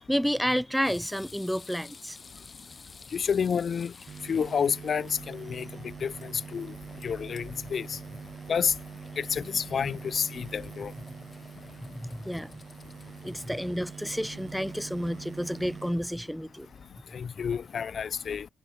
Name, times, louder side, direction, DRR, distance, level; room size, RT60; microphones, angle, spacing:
voice 1, 0.0-2.2 5.7-5.9 11.1-11.2 11.8-12.6 13.2-16.7, equal, ahead, 0.5 m, -30 dB
sound 1, 0.8-16.1, left 4 dB, 35° left, 7.4 m, -53 dB
voice 2, 3.1-3.9 4.2-6.7 7.0-8.0 8.5-8.7 9.2-10.9 17.1-18.5, left 7 dB, 55° left, 1.0 m, -29 dB
sound 2, 4.1-17.0, right 6 dB, 50° right, 1.1 m, -44 dB
cardioid pair, 70°, 0 cm